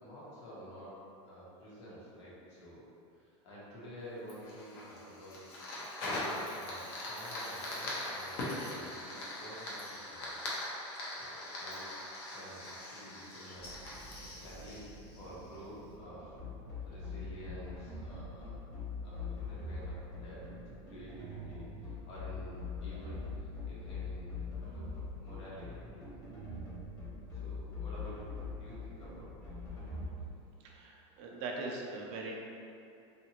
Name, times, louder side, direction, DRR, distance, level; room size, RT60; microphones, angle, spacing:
voice 1, 0.0-0.9 1.2-2.9 3.2-5.4 6.0-8.4 8.7-10.5 11.2-11.8 12.3-14.8 15.1-16.5 16.8-18.6 19.0-20.5 20.9-24.4 24.7-24.8 25.2-26.1 27.3-28.3 28.6-29.5, equal, 80° left, -7 dB, 1.1 m, -50 dB
Fire, 4.3-15.7, left 1 dB, 55° left, 0.7 m, -41 dB
sound 1, 13.6-30.3, right 2 dB, 15° right, 0.7 m, -53 dB
sound 2, 16.4-30.1, left 4 dB, 25° left, 1.0 m, -42 dB
voice 2, 30.6-32.4, right 3 dB, 45° right, -1 dB, 0.4 m, -41 dB
2.8 x 2.4 x 2.8 m, 2.6 s
supercardioid pair, 150°, 15 cm